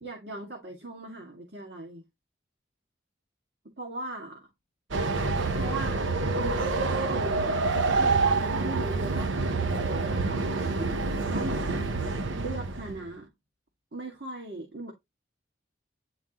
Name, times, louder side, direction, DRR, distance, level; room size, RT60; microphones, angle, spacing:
voice 1, 0.0-2.0 3.6-4.4 5.5-7.6 8.0-11.9 12.4-13.3 13.9-14.9, right 2 dB, 60° right, 1.9 m, -39 dB
Train, 4.9-13.1, right 3 dB, 85° right, 0.8 m, -27 dB
9.9 x 3.7 x 2.9 m
head